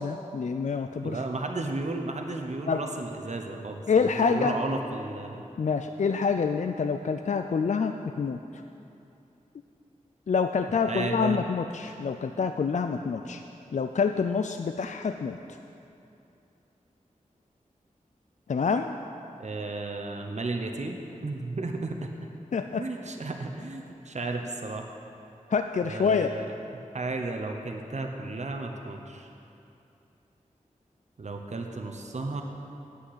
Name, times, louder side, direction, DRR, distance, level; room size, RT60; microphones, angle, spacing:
voice 1, 0.0-1.2 2.7-2.8 3.9-4.5 5.6-8.4 10.3-13.4 13.7-15.4 18.5-19.0 22.5-22.9 25.5-26.3, left 5 dB, 60° left, 7 dB, 0.4 m, -27 dB
voice 2, 1.0-5.4 10.8-11.4 19.4-22.1 22.8-24.9 25.8-26.5 26.9-29.3 31.2-32.4, right 2 dB, 55° right, 3 dB, 0.9 m, -33 dB
8.7 x 8.2 x 8.0 m, 2.7 s
wide cardioid pair, 60°, 14 cm